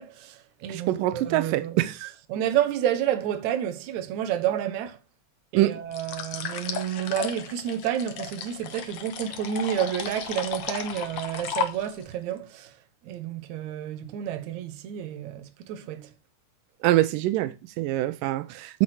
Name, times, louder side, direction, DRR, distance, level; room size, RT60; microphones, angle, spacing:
voice 1, 0.0-1.9 2.3-5.0 5.5-12.7 13.0-16.1, right 10 dB, 70° right, 2.2 m, -30 dB
voice 2, 0.7-2.1 5.5-5.8 16.8-18.8, right 15 dB, 85° right, 2.2 m, -24 dB
sound 1, 5.9-12.1, left 7 dB, 60° left, 1.6 m, -34 dB
8.4 x 6.2 x 4.8 m
omnidirectional pair, 3.7 m